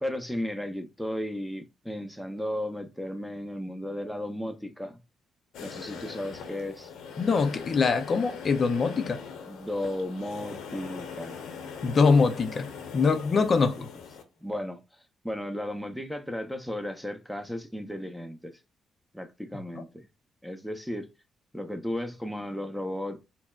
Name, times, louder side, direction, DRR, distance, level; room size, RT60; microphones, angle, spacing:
voice 1, 0.0-5.0 5.6-6.9 9.5-11.4 13.3-13.7 14.4-14.8 15.2-18.5 19.1-20.1 20.4-21.1 21.5-23.2, left 1 dB, ahead, 0.5 m, -34 dB
sound 1, 5.5-14.2, left 6 dB, 85° left, 0.7 m, -42 dB
voice 2, 7.2-9.2 11.8-13.9 19.7-19.8, left 4 dB, 50° left, 0.5 m, -24 dB
4.1 x 2.0 x 2.3 m
cardioid pair, 75°, 0 cm